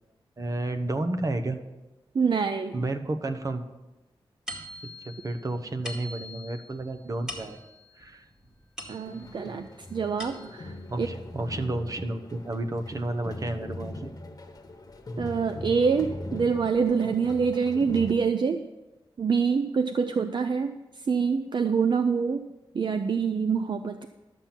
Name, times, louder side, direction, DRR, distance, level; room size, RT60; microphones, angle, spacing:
voice 1, 0.4-1.6 2.7-3.7 4.8-7.6 7.9-8.2 10.9-14.1, right 2 dB, 40° right, 8 dB, 0.9 m, -31 dB
voice 2, 2.1-2.9 8.9-11.1 15.2-18.7 19.2-22.5 22.7-24.1, right 5 dB, 55° right, 8 dB, 0.5 m, -26 dB
sound 1, 4.5-9.5 9.9-10.8, left 1 dB, 5° right, 2.1 m, -43 dB
sound 2, 9.0-18.1, left 1 dB, 40° left, 1.3 m, -40 dB
12.0 x 7.3 x 5.9 m, 1.1 s
wide cardioid pair, 110°, 9 cm